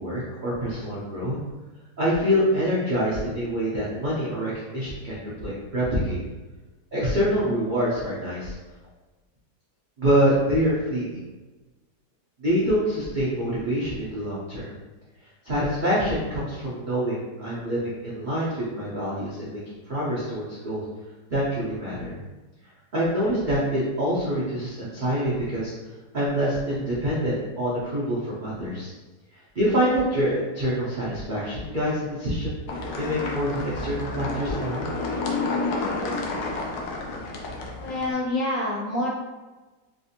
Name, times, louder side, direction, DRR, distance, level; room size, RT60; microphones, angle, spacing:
voice 1, 0.0-1.4 2.0-5.2 5.4-6.2 6.9-8.6 10.0-11.1 12.4-14.7 15.4-19.6 19.9-20.8 21.3-22.2 22.9-25.7 26.1-28.9 29.3-32.6 33.0-34.9, equal, 60° right, -8 dB, 0.5 m, -26 dB
sound 1, 32.7-38.1, left 3 dB, 85° left, 1.2 m, -30 dB
voice 2, 37.8-39.1, left 1 dB, 70° left, -4 dB, 0.8 m, -27 dB
3.5 x 2.4 x 2.7 m, 1.2 s
omnidirectional pair, 1.9 m